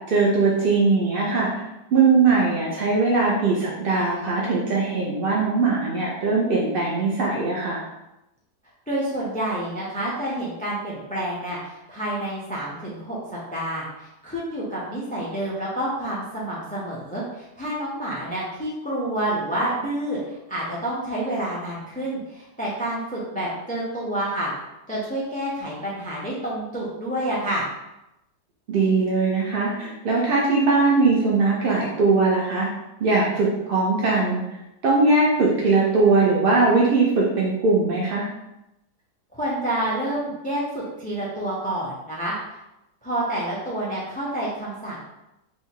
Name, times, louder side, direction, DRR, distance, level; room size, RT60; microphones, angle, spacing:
voice 1, 0.1-1.5 1.9-7.8 28.7-32.7 33.0-34.4 34.8-38.3, right 3 dB, 60° right, -4 dB, 0.5 m, -20 dB
voice 2, 8.9-13.2 13.5-24.5 24.9-27.7 39.3-42.3 43.0-45.0, right 1 dB, 10° left, -7 dB, 0.5 m, -28 dB
3.5 x 2.8 x 4.4 m, 0.91 s
omnidirectional pair, 1.8 m